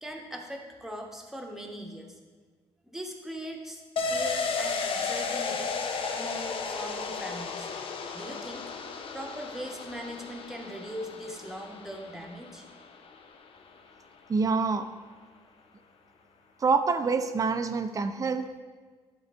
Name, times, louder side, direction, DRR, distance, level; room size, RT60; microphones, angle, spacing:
voice 1, 0.0-2.2 2.8-5.7 6.1-7.7 8.1-8.6 9.1-12.6, equal, 5° right, 1 dB, 1.1 m, -40 dB
sound 1, 4.0-13.4 13.7-13.8, left 4 dB, 55° left, 0.7 m, -34 dB
voice 2, 14.3-14.9 16.6-18.6, right 4 dB, 30° right, 9 dB, 0.6 m, -26 dB
11.0 x 3.9 x 4.5 m, 1.5 s
cardioid pair, 110°, 11 cm